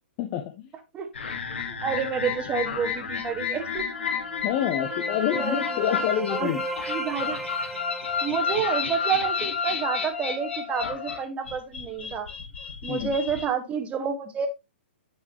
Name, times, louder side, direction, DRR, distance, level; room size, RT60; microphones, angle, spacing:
voice 1, 0.2-0.7 4.4-6.6 12.9-13.1, left 10 dB, 40° left, 7 dB, 1.0 m, -27 dB
sound 1, 1.1-13.5, left 6 dB, 75° left, 1.6 m, -31 dB
voice 2, 1.7-3.9 5.0-6.5 6.9-7.4 8.2-12.3 12.8-14.5, right 6 dB, 20° right, 6 dB, 1.5 m, -29 dB
sound 2, 4.2-9.8, right 1 dB, ahead, 1.0 m, -37 dB
9.2 x 6.0 x 2.9 m, 0.23 s
hypercardioid pair, 125°, 6 cm